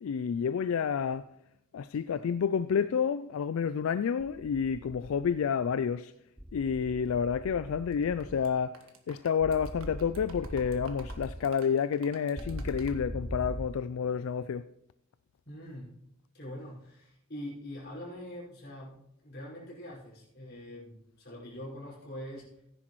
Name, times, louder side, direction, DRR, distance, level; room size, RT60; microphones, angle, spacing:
voice 1, 0.0-1.3 1.7-6.1 6.5-14.7, left 7 dB, 75° left, 0.3 m, -29 dB
sound 1, 4.2-5.4 6.4-8.4 9.4-11.4 12.4-13.7, equal, 5° right, 0.5 m, -41 dB
sound 2, 7.9-8.5 8.7-13.0, right 4 dB, 80° right, 1.5 m, -52 dB
voice 2, 15.5-15.9 16.3-22.5, left 1 dB, 50° left, 5.2 m, -44 dB
16.0 x 10.0 x 3.1 m
head